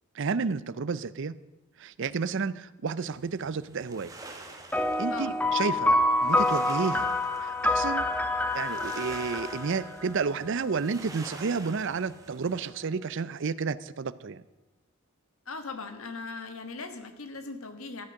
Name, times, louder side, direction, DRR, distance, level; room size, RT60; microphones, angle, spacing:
voice 1, 0.1-1.4 1.8-4.1 5.0-7.1 7.4-8.1 8.5-14.4, right 5 dB, 60° right, 17 dB, 0.5 m, -31 dB
sound 1, 3.1-12.7, right 2 dB, 15° right, 1.4 m, -47 dB
sound 2, 4.7-10.5, left 1 dB, 5° left, 0.7 m, -27 dB
voice 2, 15.4-18.1, left 4 dB, 80° left, 8 dB, 1.5 m, -39 dB
13.5 x 9.6 x 6.4 m, 1.0 s
head